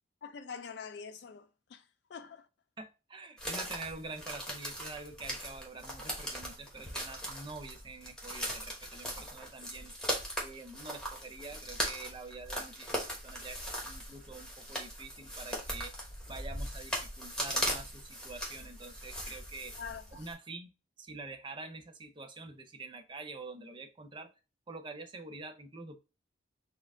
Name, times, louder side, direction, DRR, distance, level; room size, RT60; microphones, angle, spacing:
voice 1, 0.2-2.5 19.8-20.3, left 6 dB, 60° left, 0.4 m, -45 dB
voice 2, 2.8-9.9 10.4-15.9 16.3-19.7 20.1-20.7 21.0-24.3 24.7-26.0, right 3 dB, 25° right, 0.5 m, -46 dB
sound 1, 3.4-20.3, equal, 5° left, 1.1 m, -39 dB
4.3 x 2.4 x 3.4 m
head